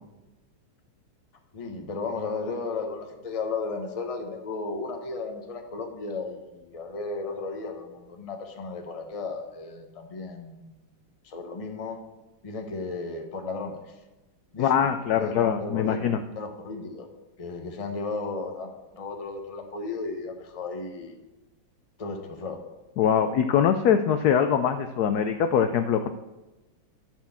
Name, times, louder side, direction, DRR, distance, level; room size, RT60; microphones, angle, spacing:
voice 1, 1.5-10.8 11.2-12.0 12.4-13.9 14.5-14.9 15.1-15.3 15.6-17.1 17.4-21.1 22.0-22.6, left 3 dB, 25° left, 4 dB, 0.7 m, -34 dB
voice 2, 14.6-16.2 23.0-26.1, left 8 dB, 80° left, 8 dB, 0.8 m, -23 dB
12.5 x 4.4 x 7.0 m, 1.1 s
omnidirectional pair, 2.2 m